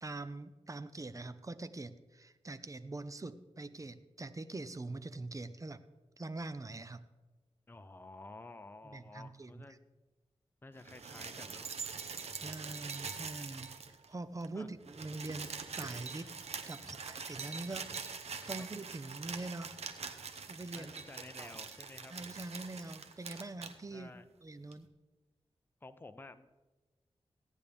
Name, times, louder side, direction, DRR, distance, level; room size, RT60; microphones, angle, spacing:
voice 1, 0.0-5.8 6.2-7.0 8.8-9.6 12.4-13.8 14.1-16.3 16.7-19.8 20.5-20.9 21.4-21.5 22.1-24.1 24.4-24.9, right 2 dB, 30° right, 12 dB, 0.7 m, -44 dB
voice 2, 7.7-9.8 10.6-11.7 14.5-14.7 16.8-17.0 20.7-22.1 23.9-24.3 25.8-26.6, left 2 dB, 20° left, 10 dB, 0.6 m, -52 dB
sound 1, 10.8-14.1 14.4-14.5 14.7-23.7 24.7-24.8, right 5 dB, 80° right, 0.9 m, -44 dB
16.0 x 9.8 x 3.5 m, 1.2 s
wide cardioid pair, 70°, 11 cm